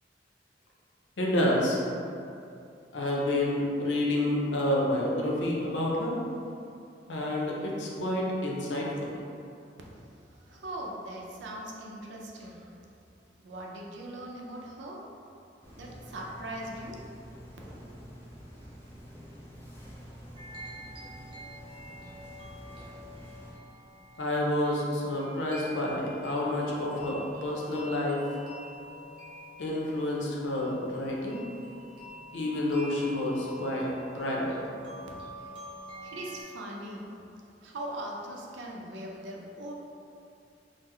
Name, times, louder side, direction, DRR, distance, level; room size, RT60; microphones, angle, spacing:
voice 1, 1.2-1.8 2.9-6.2 7.1-9.2 24.2-28.2 29.6-31.4 32.3-33.9 34.1-34.6, left 1 dB, 80° left, -3 dB, 0.6 m, -29 dB
voice 2, 9.8-12.9 13.4-15.3 15.7-17.6 35.3-35.6 36.0-39.7, right 1 dB, 85° right, -1 dB, 0.5 m, -41 dB
sound 1, 15.6-23.5, equal, 15° left, 0.6 m, -48 dB
sound 2, 20.4-36.4, equal, 30° right, 0.8 m, -47 dB
3.6 x 2.0 x 3.1 m, 2.5 s
head